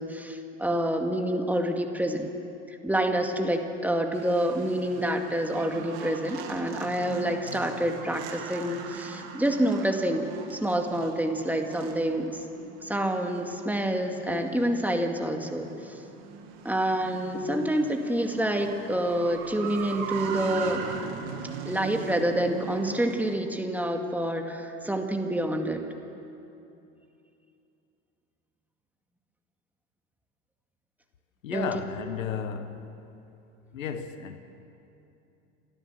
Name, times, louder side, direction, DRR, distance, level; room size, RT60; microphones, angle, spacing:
voice 1, 0.0-2.3 2.8-12.3 12.8-15.7 16.6-20.8 21.7-25.8 31.5-31.7, right 1 dB, 5° right, 2.1 m, -27 dB
sound 1, 4.1-23.3, right 6 dB, 65° right, 2.4 m, -40 dB
voice 2, 31.4-32.9 33.7-34.4, left 7 dB, 80° left, 1.3 m, -33 dB
30.0 x 12.5 x 7.4 m
hypercardioid pair, 80°, 39 cm